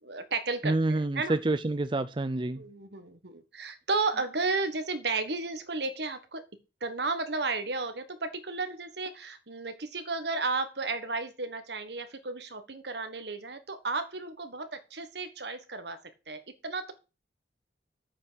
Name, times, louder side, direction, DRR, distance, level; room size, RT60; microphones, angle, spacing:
voice 1, 0.0-1.3 2.6-6.4 6.8-16.0 16.3-16.9, right 3 dB, 70° right, 1.6 m, -33 dB
voice 2, 0.6-2.6, right 2 dB, 25° right, 0.5 m, -28 dB
8.8 x 5.9 x 6.4 m
head